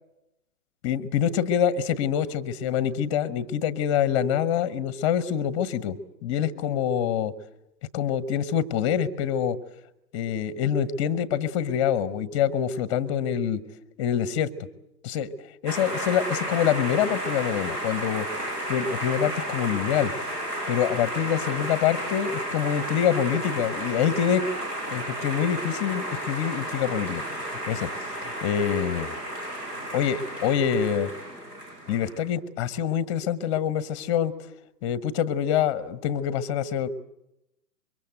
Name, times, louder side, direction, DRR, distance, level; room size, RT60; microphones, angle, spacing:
voice 1, 0.8-7.3 7.9-9.6 10.1-13.6 14.0-14.5 15.0-15.3 15.6-18.3 18.7-20.1 20.7-24.5 24.9-27.9 28.2-29.2 29.9-31.1 31.9-34.3 34.8-36.9, left 9 dB, 20° left, 17 dB, 0.9 m, -25 dB
sound 1, 15.7-32.3, right 1 dB, 75° right, 7.1 m, -33 dB
24.5 x 23.0 x 7.9 m, 0.86 s
figure-of-eight pair, 130°, 48 cm